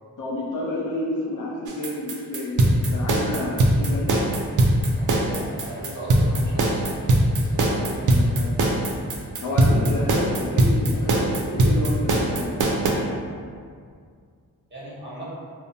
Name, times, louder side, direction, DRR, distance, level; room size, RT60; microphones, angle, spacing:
voice 1, 0.2-4.2 8.0-8.5 9.4-12.7, left 1 dB, 55° left, -3 dB, 0.5 m, -30 dB
sound 1, 1.7-12.9, right 1 dB, 55° right, 0.5 m, -20 dB
voice 2, 4.9-8.3 14.7-15.3, right 1 dB, 30° right, -8 dB, 1.1 m, -38 dB
2.6 x 2.0 x 2.6 m, 2.1 s
cardioid pair, 45°, 37 cm